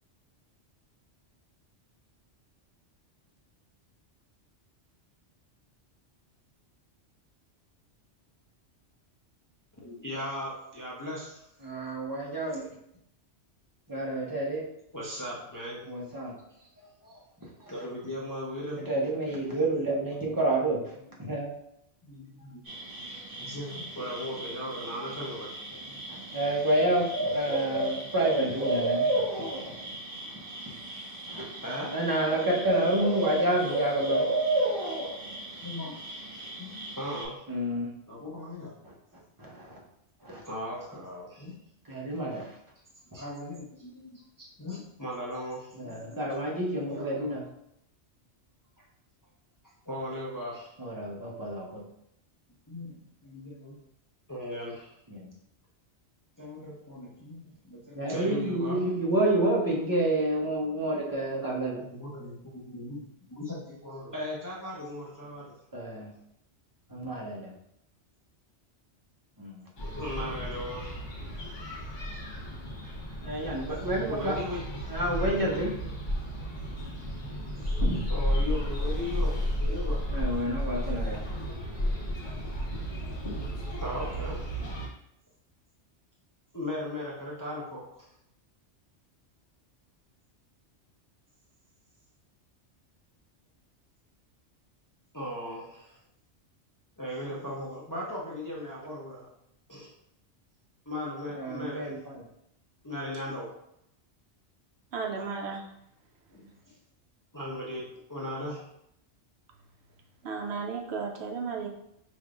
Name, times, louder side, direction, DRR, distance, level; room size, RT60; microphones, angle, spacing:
voice 1, 9.8-11.5 14.9-15.8 16.6-18.9 22.0-22.7 23.4-26.0 31.6-31.9 35.5-36.0 36.6-37.4 38.1-38.8 40.5-41.6 43.1-46.5 46.8-47.4 49.9-50.7 52.7-53.8 54.3-55.0 56.4-58.8 61.8-65.5 69.8-71.0 74.1-74.6 78.1-80.0 83.8-84.6 86.5-88.1 95.1-96.0 97.0-99.3 99.7-99.9 100.9-101.9 102.8-103.5 106.3-106.8 107.3-108.6, left 1 dB, 20° left, -5 dB, 0.6 m, -38 dB
voice 2, 11.6-12.7 13.9-14.6 15.9-16.3 18.9-20.8 21.2-21.5 26.1-29.5 31.3-31.5 31.9-34.2 37.5-38.0 38.8-38.9 39.4-39.8 40.2-40.4 41.9-42.6 45.8-47.4 50.8-51.8 55.1-55.3 57.9-61.8 65.7-66.1 66.9-67.6 69.4-69.6 73.2-74.3 74.9-75.7 77.8-78.0 80.1-81.2 101.3-102.0, right 1 dB, 20° right, -3 dB, 0.8 m, -29 dB
sound 1, 22.7-37.2, right 2 dB, 50° right, 1.7 m, -33 dB
sound 2, 69.8-84.9, equal, 85° left, 1.4 m, -33 dB
voice 3, 104.9-105.6 110.2-111.7, right 5 dB, 70° right, 2 dB, 0.8 m, -34 dB
5.3 x 3.3 x 2.5 m, 0.77 s
omnidirectional pair, 1.2 m